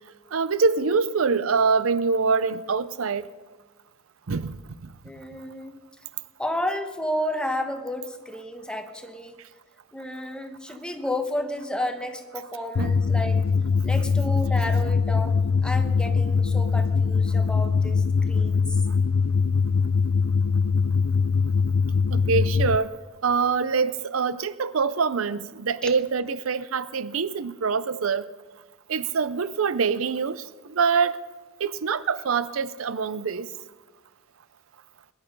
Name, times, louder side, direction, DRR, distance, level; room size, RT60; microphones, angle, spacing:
voice 1, 0.3-3.2 4.3-4.6 12.8-13.0 22.1-22.9 23.2-28.2 28.9-30.4 30.8-31.1 31.6-33.5, right 5 dB, 80° right, 0.6 m, -24 dB
voice 2, 5.0-5.8 6.4-9.4 9.9-13.4 13.8-18.8 25.8-25.9, left 1 dB, 5° left, 1.2 m, -32 dB
sound 1, 12.8-22.8, left 5 dB, 80° left, 0.4 m, -22 dB
21.5 x 11.0 x 5.3 m
head